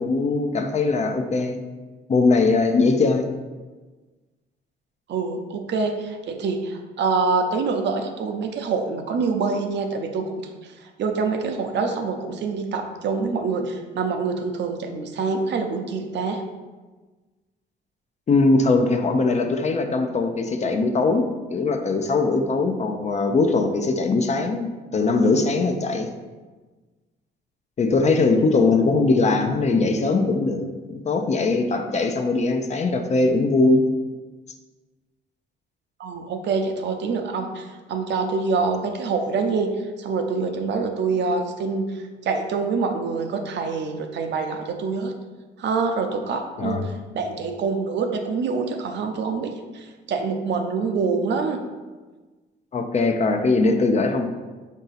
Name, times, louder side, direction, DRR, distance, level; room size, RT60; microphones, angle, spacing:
voice 1, 0.0-1.6 2.1-3.3 18.3-26.1 27.8-33.8 46.6-46.9 52.7-54.3, left 3 dB, 35° left, 5 dB, 0.5 m, -21 dB
voice 2, 5.1-10.4 11.0-16.4 36.0-39.7 40.0-45.1 45.6-51.6, right 4 dB, 65° right, 5 dB, 0.6 m, -26 dB
4.7 x 2.7 x 4.0 m, 1.3 s
cardioid pair, 90°, 20 cm